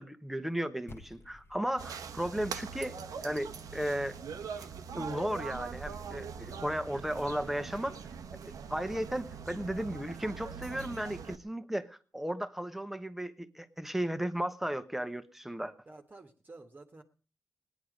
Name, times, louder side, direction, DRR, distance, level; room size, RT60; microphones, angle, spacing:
voice 1, 0.0-4.2 4.5-4.7 4.9-8.0 8.4-15.7, right 1 dB, 5° right, 10 dB, 1.1 m, -35 dB
sound 1, 0.9-5.4, left 2 dB, 45° left, 1.3 m, -57 dB
sound 2, 1.8-11.4, right 6 dB, 85° right, 1.0 m, -42 dB
voice 2, 15.8-17.0, right 3 dB, 30° right, 4 dB, 1.4 m, -52 dB
18.0 x 10.5 x 5.1 m, 0.41 s
cardioid pair, 105°, 6 cm